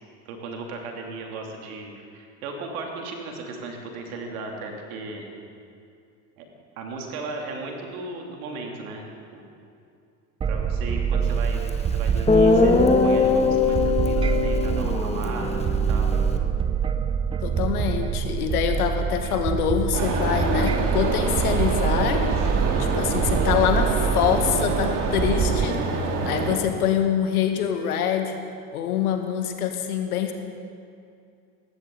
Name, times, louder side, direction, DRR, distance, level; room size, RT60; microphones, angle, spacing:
voice 1, 0.2-5.3 6.4-6.5 6.8-9.4 10.5-12.7 13.0-16.1, right 3 dB, 65° right, 1 dB, 2.9 m, -36 dB
sound 1, 10.4-25.7, right 7 dB, 15° right, 0.4 m, -25 dB
Guitar, 11.7-11.8 12.3-16.4, left 4 dB, 15° left, 1.3 m, -21 dB
voice 2, 17.4-25.8 26.2-28.4 28.7-30.3, left 8 dB, 70° left, 6 dB, 1.6 m, -25 dB
sound 2, 19.9-26.6, right 3 dB, 45° right, 2.3 m, -26 dB
19.0 x 15.0 x 3.9 m, 2.4 s
figure-of-eight pair, 70°, 46 cm